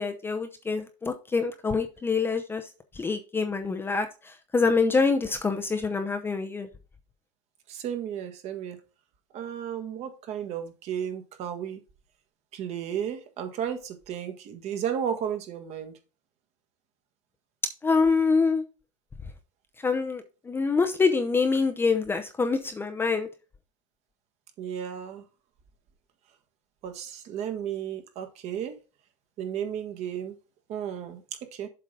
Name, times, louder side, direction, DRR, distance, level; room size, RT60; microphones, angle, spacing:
voice 1, 0.0-2.7 2.9-6.7 17.8-18.6 19.8-23.3, left 4 dB, 15° left, 6 dB, 0.7 m, -25 dB
voice 2, 7.7-8.8 9.3-11.8 12.5-15.9 24.6-25.2 26.8-28.7 29.4-30.3 30.7-31.7, right 9 dB, 40° right, 6 dB, 1.5 m, -33 dB
7.6 x 3.9 x 5.3 m, 0.32 s
supercardioid pair, 120°, 16 cm